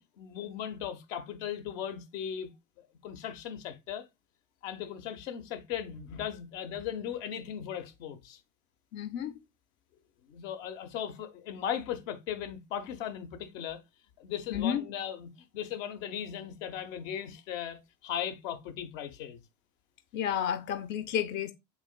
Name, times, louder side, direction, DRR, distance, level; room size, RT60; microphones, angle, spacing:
voice 1, 0.2-2.5 2.8-4.0 4.6-8.4 10.3-13.8 14.2-19.4, left 9 dB, 60° left, 0.9 m, -37 dB
voice 2, 8.9-9.3 14.5-14.8 20.1-21.5, left 9 dB, 25° left, 0.4 m, -31 dB
7.0 x 2.4 x 2.2 m
figure-of-eight pair, 80°, 46 cm